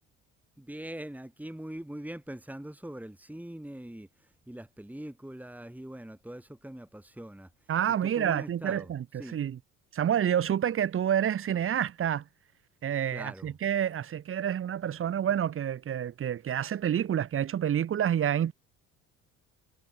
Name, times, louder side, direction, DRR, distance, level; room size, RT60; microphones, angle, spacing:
voice 1, 0.6-7.7 8.0-8.9 9.1-9.4 13.1-13.5, right 1 dB, 5° right, 4.0 m, -42 dB
voice 2, 7.7-9.6 9.9-12.3 12.8-18.5, right 9 dB, 30° right, 0.9 m, -28 dB
hypercardioid pair, 60°, 41 cm